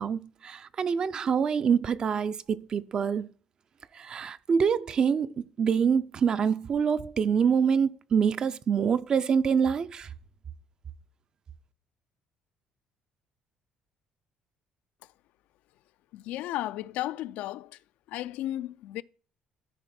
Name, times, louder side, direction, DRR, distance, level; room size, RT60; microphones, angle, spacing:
voice 1, 0.0-3.3 4.0-10.1, right 6 dB, 30° right, 0.4 m, -26 dB
voice 2, 16.1-17.8 18.1-19.0, left 14 dB, 80° left, 0.4 m, -34 dB
13.0 x 5.3 x 4.2 m
cardioid pair, 165°, 2 cm